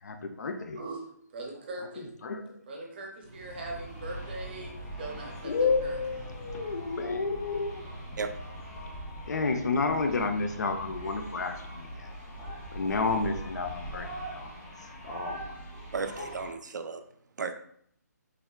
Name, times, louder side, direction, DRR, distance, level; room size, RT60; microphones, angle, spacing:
voice 1, 0.0-0.8 2.0-2.6 5.4-7.9 9.3-12.1 12.7-14.5 14.8-15.9, left 4 dB, 70° left, 6 dB, 0.4 m, -31 dB
voice 2, 0.8-2.3 2.7-5.5 5.8-6.0, right 2 dB, 35° right, 0 dB, 0.6 m, -41 dB
sound 1, 3.2-16.5, right 1 dB, 10° left, 0.4 m, -41 dB
voice 3, 15.9-17.0 17.4-17.5, right 5 dB, 85° right, 7 dB, 0.3 m, -34 dB
3.4 x 2.0 x 2.2 m, 0.65 s
hypercardioid pair, 165°, 9 cm